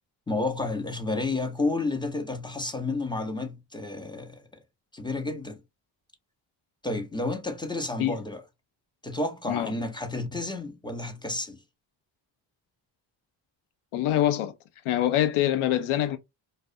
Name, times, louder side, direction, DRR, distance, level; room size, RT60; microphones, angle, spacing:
voice 1, 0.3-4.5 4.9-5.6 6.8-8.4 9.0-11.6, left 2 dB, 10° left, 0.6 m, -31 dB
voice 2, 13.9-14.5 14.8-16.2, left 12 dB, 75° left, 0.6 m, -24 dB
2.3 x 2.1 x 2.6 m
supercardioid pair, 50°, 50 cm